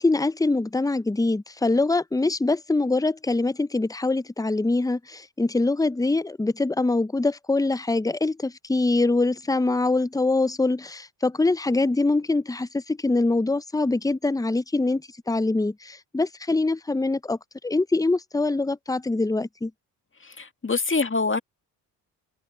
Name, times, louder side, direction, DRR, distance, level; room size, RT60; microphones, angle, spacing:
voice 1, 0.0-17.4 17.6-19.7, left 2 dB, 5° left, 0.9 m, -24 dB
voice 2, 20.4-21.4, left 4 dB, 25° left, 2.2 m, -24 dB
hypercardioid pair, 40°, 49 cm